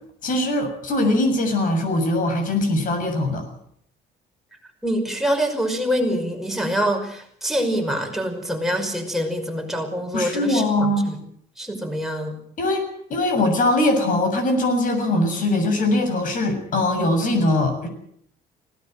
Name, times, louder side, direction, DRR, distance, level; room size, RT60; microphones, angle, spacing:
voice 1, 0.2-3.5 10.1-11.1 12.6-17.9, left 1 dB, 50° left, 7 dB, 7.1 m, -21 dB
voice 2, 4.8-11.2 11.6-12.4, equal, ahead, 2 dB, 5.7 m, -25 dB
20.5 x 18.0 x 7.9 m, 0.66 s
cardioid pair, 110°, 17 cm